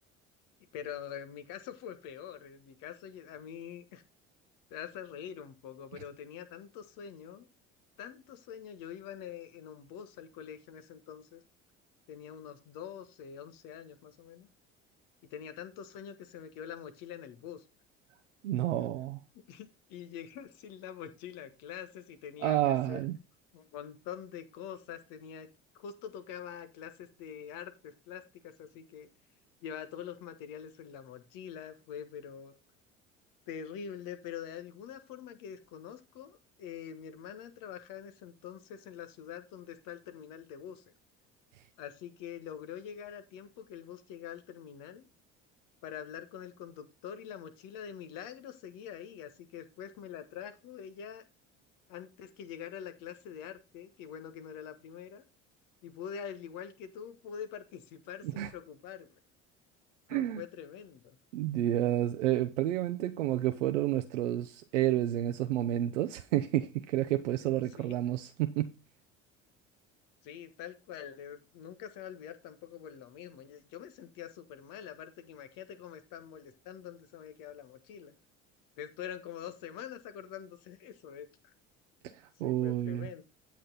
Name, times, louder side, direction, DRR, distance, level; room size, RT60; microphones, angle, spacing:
voice 1, 0.7-4.0 4.7-7.5 8.0-11.4 12.1-14.5 15.3-17.6 19.5-23.0 23.5-25.5 25.7-29.1 29.6-32.5 33.5-40.8 41.8-45.1 45.8-51.2 51.9-55.2 55.8-59.1 60.1-61.2 67.8-67.9 70.2-78.1 78.8-81.5 82.0-82.2 82.4-83.2, left 8 dB, 65° left, 1.4 m, -45 dB
voice 2, 18.4-19.2 22.4-23.2 58.4-58.5 60.1-60.4 61.3-68.7 82.4-83.1, right 13 dB, 85° right, 0.6 m, -30 dB
8.6 x 7.4 x 3.9 m
hypercardioid pair, 65°, 35 cm